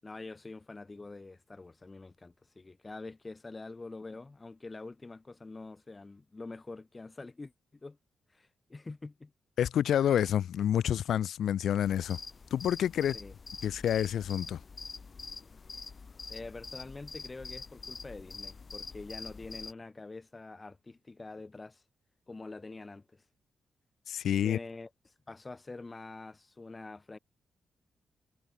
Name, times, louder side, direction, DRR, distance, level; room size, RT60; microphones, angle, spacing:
voice 1, 0.0-7.5 7.8-8.0 8.3-9.3 13.1-13.3 16.3-21.8 22.3-23.2 24.4-24.9 25.3-27.2, left 3 dB, 30° left, 6.4 m, -45 dB
voice 2, 9.6-12.2 12.5-13.2 13.6-14.6 24.1-24.6, left 10 dB, 80° left, 0.4 m, -28 dB
sound 1, 11.8-19.7, left 4 dB, 45° left, 4.5 m, -45 dB
cardioid pair, 70°, 0 cm